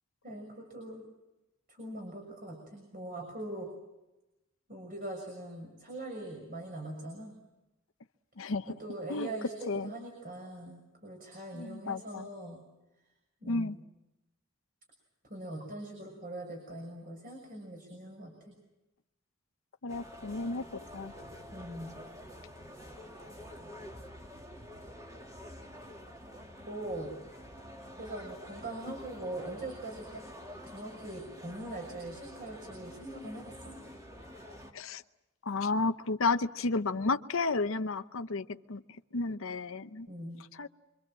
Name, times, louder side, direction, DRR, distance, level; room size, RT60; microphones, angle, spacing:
voice 1, 0.2-1.1 1.7-3.7 4.7-7.4 8.8-12.6 13.4-13.7 15.3-18.5 21.5-22.0 26.7-27.1 27.9-30.2 30.6-33.8 40.1-40.4, right 1 dB, 40° right, 1 dB, 6.3 m, -42 dB
voice 2, 8.4-8.7 9.1-9.3 9.7-9.9 11.5-12.3 13.5-13.8 19.8-21.1 34.7-35.0 35.4-38.8 39.1-40.1 40.4-40.7, left 3 dB, 65° left, 9 dB, 0.8 m, -32 dB
sound 1, 19.9-34.7, equal, 15° right, 2.5 m, -48 dB
26.5 x 24.5 x 7.6 m, 0.98 s
head